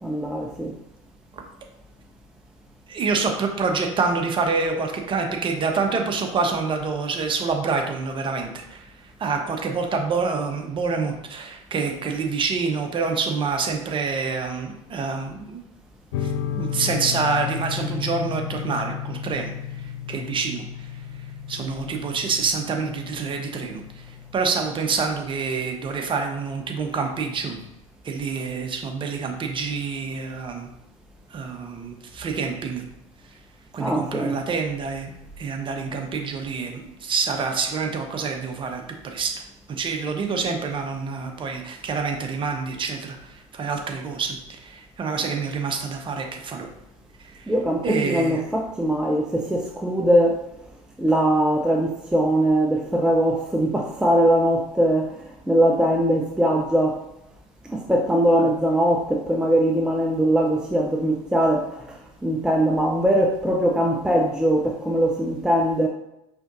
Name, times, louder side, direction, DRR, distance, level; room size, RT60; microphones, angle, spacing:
voice 1, 0.0-0.7 33.8-34.4 47.5-50.4 51.0-57.0 57.7-65.9, right 1 dB, 5° right, 1 dB, 0.5 m, -21 dB
voice 2, 2.9-8.8 9.2-15.6 16.2-19.5 19.8-20.9 21.5-27.6 28.0-30.7 31.3-32.8 33.7-35.1 35.4-39.3 39.7-46.7 47.2-47.5 47.8-48.4, right 4 dB, 30° right, 3 dB, 0.9 m, -27 dB
sound 1, 16.1-25.1, left 9 dB, 65° left, 0.5 m, -33 dB
4.9 x 3.7 x 2.5 m, 0.86 s
hypercardioid pair, 75°, 17 cm